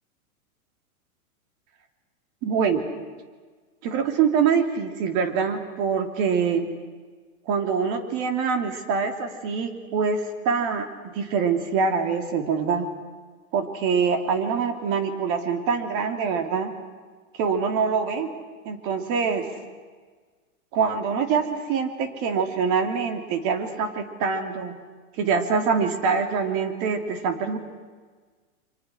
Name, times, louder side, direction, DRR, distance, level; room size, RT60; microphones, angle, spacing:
voice 1, 2.4-2.8 3.8-6.7 7.5-12.9 13.5-16.7 17.3-18.3 18.6-19.5 20.7-24.8 25.2-27.6, right 6 dB, 45° right, 6 dB, 3.0 m, -24 dB
29.0 x 24.0 x 6.2 m, 1.5 s
hypercardioid pair, 120°, 43 cm